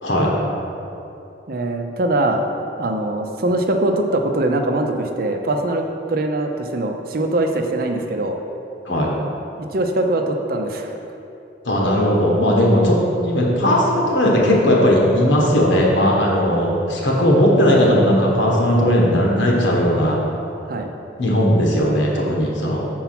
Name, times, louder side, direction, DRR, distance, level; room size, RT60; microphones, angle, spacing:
voice 1, 1.5-2.4 2.8-8.4 9.6-11.0 20.7-20.9, right 2 dB, 55° right, 4 dB, 0.6 m, -22 dB
voice 2, 11.6-20.2 21.2-22.9, equal, 85° left, -2 dB, 1.3 m, -17 dB
5.8 x 4.6 x 5.9 m, 2.8 s
head